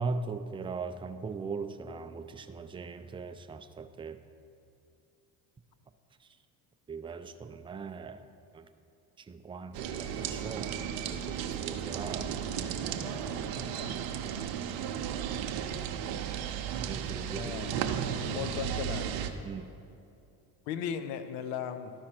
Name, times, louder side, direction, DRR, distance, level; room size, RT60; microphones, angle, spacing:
voice 1, 0.0-4.2 6.2-6.4 6.9-8.3 8.5-8.7 9.2-12.4 13.5-14.0 16.9-17.5 19.4-19.7, right 4 dB, 15° right, 9 dB, 0.3 m, -40 dB
sound 1, 9.7-19.3, right 8 dB, 75° right, 0.7 m, -34 dB
voice 2, 17.3-17.8 18.1-19.1 20.7-21.9, left 8 dB, 75° left, 11 dB, 0.7 m, -36 dB
12.5 x 4.8 x 4.4 m, 2.6 s
hypercardioid pair, 65°, 46 cm